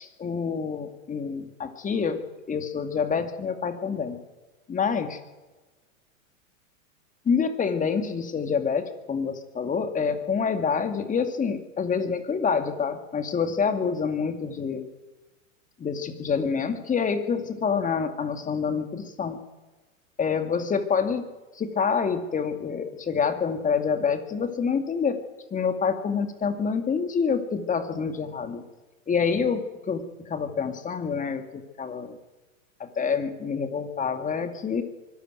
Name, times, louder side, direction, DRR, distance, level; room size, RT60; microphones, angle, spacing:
voice 1, 0.0-2.2 2.5-4.2 4.7-5.2 7.3-14.9 15.8-19.4 20.2-21.3 21.5-25.2 25.5-28.6 29.1-32.2 32.8-34.8, left 6 dB, 20° left, 8 dB, 2.3 m, -27 dB
24.0 x 14.0 x 9.1 m, 1.2 s
hypercardioid pair, 115°, 42 cm